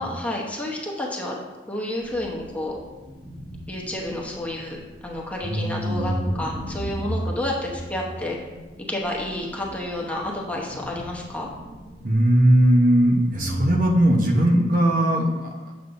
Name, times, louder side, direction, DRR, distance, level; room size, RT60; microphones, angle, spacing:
voice 1, 0.0-1.3 1.7-2.8 3.7-8.4 8.9-11.5, left 1 dB, 10° left, -3 dB, 0.9 m, -30 dB
sound 1, 2.0-5.5 5.9-13.1 13.3-13.8, right 1 dB, 20° right, 1.2 m, -35 dB
voice 2, 5.4-6.1 12.0-15.7, right 1 dB, 50° right, 0 dB, 0.9 m, -19 dB
8.0 x 7.3 x 2.6 m, 1.2 s
head